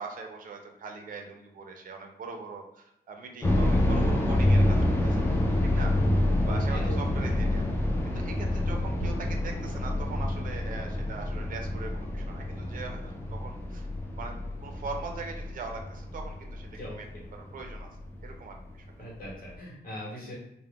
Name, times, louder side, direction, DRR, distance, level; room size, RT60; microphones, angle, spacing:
voice 1, 0.0-5.2 5.6-6.0 6.4-7.7 8.0-13.9 14.2-17.1 17.3-17.9 18.2-18.8, right 4 dB, 50° right, 3 dB, 0.5 m, -41 dB
sound 1, 3.4-18.3 18.6-18.7 19.3-19.6, left 1 dB, 15° left, 0.4 m, -27 dB
voice 2, 19.0-20.3, equal, 55° left, -4 dB, 1.2 m, -39 dB
2.3 x 2.1 x 3.5 m, 0.82 s
wide cardioid pair, 170°, 18 cm